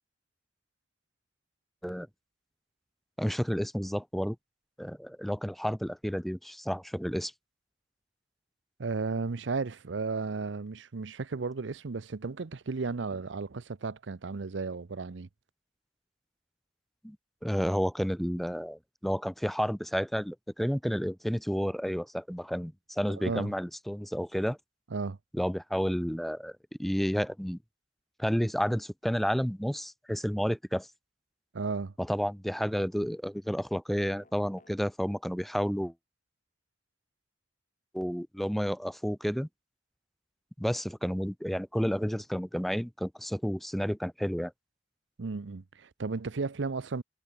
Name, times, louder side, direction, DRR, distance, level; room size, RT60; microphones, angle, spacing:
voice 1, 3.2-4.4 4.8-7.3 17.0-17.2 17.4-24.6 25.3-27.6 28.2-30.9 32.0-35.9 37.9-39.5 40.6-44.5, equal, ahead, 0.5 m, -31 dB
voice 2, 8.8-15.3 23.2-23.5 24.9-25.2 31.5-31.9 45.2-47.0, right 4 dB, 80° right, 0.7 m, -34 dB
sound 1, 34.1-34.8, left 2 dB, 45° left, 4.4 m, -58 dB
head